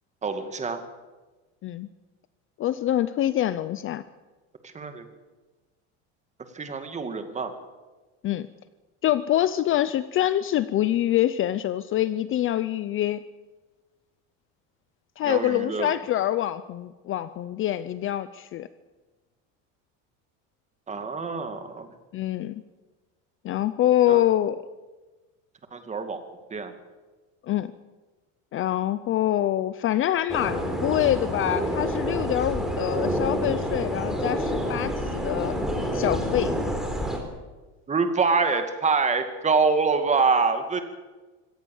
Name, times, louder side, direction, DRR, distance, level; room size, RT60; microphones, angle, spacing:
voice 1, 0.2-0.8 4.6-5.0 6.5-7.5 15.2-15.9 20.9-21.9 24.1-24.2 25.7-26.2 26.5-26.7 37.9-40.8, right 4 dB, 20° right, 8 dB, 2.3 m, -25 dB
voice 2, 2.6-4.0 8.2-8.5 9.0-13.2 15.2-18.7 22.1-22.6 23.4-24.6 27.4-27.7 28.5-35.6 35.9-36.6, left 12 dB, 35° left, 15 dB, 0.7 m, -25 dB
sound 1, 30.3-37.2, equal, ahead, 3.7 m, -28 dB
25.0 x 17.0 x 7.2 m, 1.2 s
cardioid pair, 150°, 37 cm